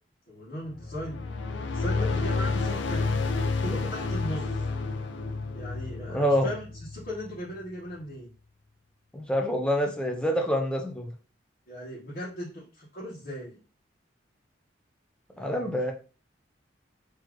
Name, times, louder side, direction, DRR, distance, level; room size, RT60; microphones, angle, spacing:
voice 1, 0.3-1.2 1.6-3.0 3.4-4.6 5.5-6.6 6.9-8.3 11.7-13.6 15.3-15.9, equal, 45° left, -8 dB, 1.4 m, -38 dB
sound 1, 0.7-7.4, left 3 dB, 80° left, 0.5 m, -30 dB
voice 2, 6.1-6.5 9.1-11.1 15.4-15.9, equal, 5° left, 2 dB, 0.6 m, -26 dB
4.1 x 3.0 x 3.1 m, 0.36 s
head